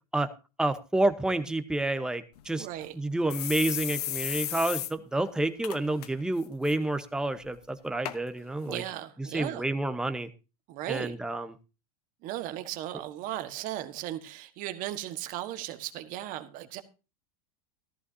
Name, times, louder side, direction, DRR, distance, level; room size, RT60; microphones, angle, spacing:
voice 1, 0.6-2.7 2.9-8.8 9.3-10.3 10.9-11.5, right 2 dB, 5° right, 9 dB, 0.9 m, -29 dB
sound 1, 2.4-2.5 2.8-2.9 3.3-4.9 5.2-5.3 5.6-6.1 6.4-6.7 7.4-7.5 8.0-8.2 8.9-9.0, left 12 dB, 85° left, 1.0 m, -34 dB
voice 2, 2.6-3.0 8.6-9.6 10.7-11.1 12.2-16.8, right 13 dB, 45° right, 9 dB, 1.4 m, -36 dB
14.0 x 14.0 x 2.7 m, 0.30 s
supercardioid pair, 130°, 19 cm